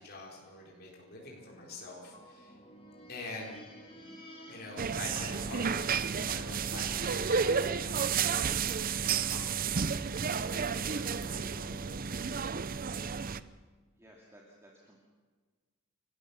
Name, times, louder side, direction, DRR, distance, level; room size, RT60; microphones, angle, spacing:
voice 1, 0.0-2.6 3.1-3.5 4.5-11.9, left 2 dB, 45° left, -2 dB, 4.1 m, -46 dB
sound 1, 1.2-9.1 10.1-12.7, equal, 25° left, 4.0 m, -54 dB
sound 2, 4.8-13.4, right 6 dB, 40° right, 0.6 m, -31 dB
voice 2, 13.9-15.0, right 1 dB, 15° right, -2 dB, 2.5 m, -57 dB
30.0 x 13.5 x 6.8 m, 1.5 s
head